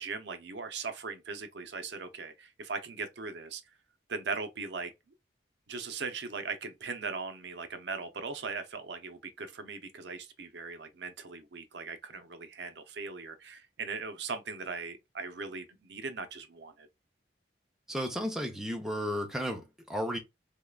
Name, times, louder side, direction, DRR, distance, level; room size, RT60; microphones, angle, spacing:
voice 1, 0.0-3.6 4.1-4.9 5.7-16.9, right 4 dB, 70° right, 0.6 m, -39 dB
voice 2, 17.9-20.2, equal, 5° right, 0.6 m, -33 dB
3.6 x 3.2 x 2.3 m
head